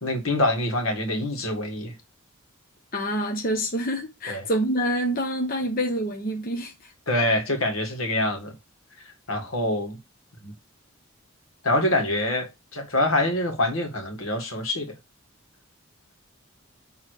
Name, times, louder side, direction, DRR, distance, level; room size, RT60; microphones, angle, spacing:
voice 1, 0.0-1.9 4.3-4.4 7.1-8.5 9.3-10.0 10.4-10.5 11.6-14.9, left 1 dB, 80° left, 1.9 m, -25 dB
voice 2, 2.9-6.9, equal, 45° left, 1.1 m, -27 dB
6.5 x 3.3 x 4.8 m
head